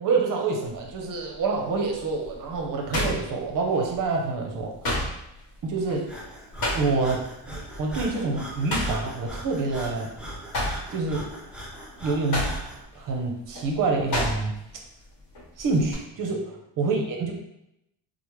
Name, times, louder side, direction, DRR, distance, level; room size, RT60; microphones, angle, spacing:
voice 1, 0.0-4.7 5.6-6.1 6.7-10.1 10.9-11.3 12.0-12.5 13.0-14.5 15.6-17.3, right 3 dB, 45° right, 1 dB, 0.7 m, -27 dB
sound 1, 0.7-1.0 1.5-4.0 4.3-7.2 7.5-7.8 8.1-10.1 10.4-14.8 15.0-15.9, left 1 dB, 50° left, 1.2 m, -31 dB
Breathing, 6.1-12.8, right 1 dB, ahead, 0.4 m, -39 dB
3.2 x 2.1 x 3.0 m, 0.83 s
cardioid pair, 115°, 46 cm